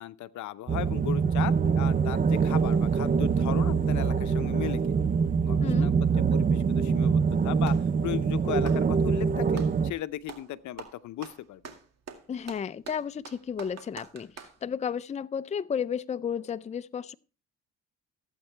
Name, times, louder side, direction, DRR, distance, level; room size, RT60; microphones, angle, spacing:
voice 1, 0.0-5.0 5.4-7.7 8.0-11.7, left 13 dB, 75° left, 0.7 m, -37 dB
sound 1, 0.7-9.9, right 5 dB, 30° right, 0.5 m, -24 dB
sound 2, 2.3-9.8, right 2 dB, 75° right, 5.2 m, -46 dB
voice 2, 5.6-5.9 12.3-17.1, left 7 dB, 25° left, 0.4 m, -33 dB
Clapping, 7.1-7.9 8.5-9.8 10.2-10.5 10.8-14.6, right 6 dB, 55° right, 2.1 m, -45 dB
15.0 x 8.3 x 3.3 m
cardioid pair, 90°, 30 cm